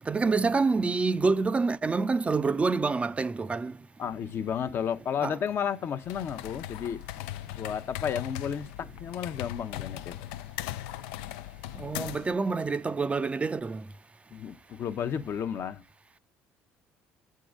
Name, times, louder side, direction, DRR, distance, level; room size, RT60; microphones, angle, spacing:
voice 1, 0.1-3.7 5.2-5.3 11.8-13.8, right 4 dB, 25° right, 0.4 m, -27 dB
voice 2, 4.0-7.0 7.6-10.1 11.8-11.9 14.3-15.8, left 8 dB, 50° left, 0.7 m, -32 dB
sound 1, 6.0-12.4, left 14 dB, 85° left, 0.3 m, -39 dB
7.8 x 3.7 x 6.3 m
supercardioid pair, 75°, 5 cm